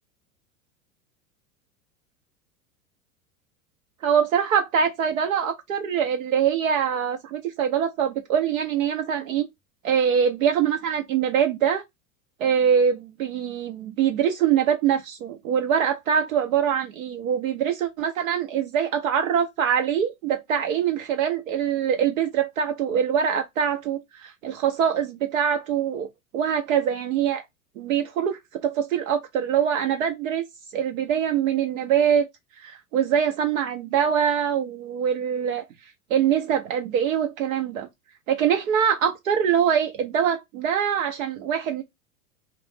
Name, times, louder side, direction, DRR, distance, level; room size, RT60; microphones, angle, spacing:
voice 1, 4.0-9.5 9.8-11.8 12.4-26.1 26.3-27.4 27.8-30.4 30.7-32.2 32.6-35.7 36.1-37.9 38.3-41.8, right 8 dB, 70° right, 0.6 m, -23 dB
2.4 x 2.1 x 3.2 m
hypercardioid pair, 90°, 42 cm